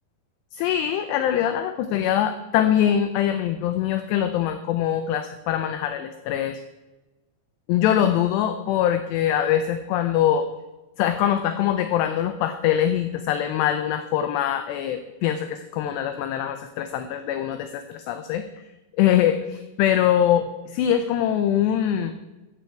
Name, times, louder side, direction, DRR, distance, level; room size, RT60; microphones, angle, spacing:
voice 1, 0.5-6.6 7.7-10.5 11.0-18.5 19.0-22.1, left 10 dB, 80° left, 8 dB, 2.5 m, -23 dB
14.5 x 8.3 x 4.5 m, 1.1 s
omnidirectional pair, 5.5 m